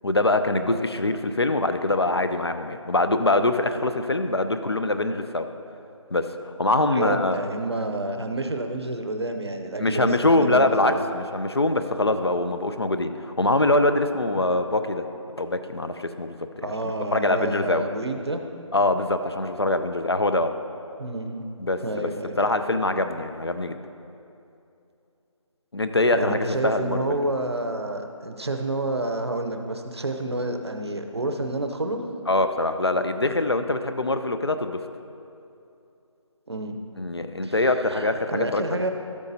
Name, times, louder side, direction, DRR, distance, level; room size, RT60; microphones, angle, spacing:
voice 1, 0.0-5.5 6.1-7.4 9.8-15.0 15.4-16.6 17.1-17.9 18.7-20.5 21.6-22.1 22.4-23.8 25.7-27.2 32.3-34.8 37.0-38.8, left 2 dB, 50° left, 9 dB, 0.4 m, -23 dB
voice 2, 6.9-11.0 14.4-14.6 16.6-18.4 21.0-21.4 21.8-22.6 26.1-32.1 36.5-36.8 37.4-38.9, right 2 dB, 50° right, 5 dB, 0.7 m, -29 dB
13.0 x 8.2 x 2.7 m, 2.7 s
figure-of-eight pair, 180°, 17 cm